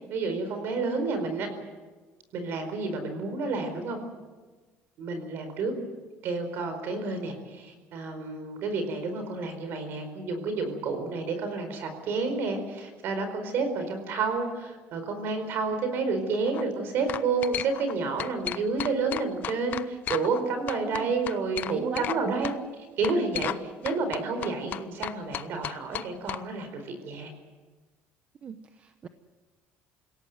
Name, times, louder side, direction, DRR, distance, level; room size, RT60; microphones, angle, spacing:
voice 1, 0.1-1.5 2.3-4.0 5.0-5.7 6.2-22.5 23.0-27.3, right 4 dB, 55° right, 7 dB, 4.6 m, -30 dB
sound 1, 16.3-16.6 17.1-17.9 18.2-20.4 20.7-22.2 22.4-22.6 23.0-23.6 23.8-26.4, left 10 dB, 40° left, 0.7 m, -34 dB
voice 2, 21.7-22.5 28.4-29.1, right 6 dB, 30° right, 9 dB, 0.9 m, -37 dB
27.0 x 17.0 x 7.9 m, 1.3 s
cardioid pair, 160°, 5 cm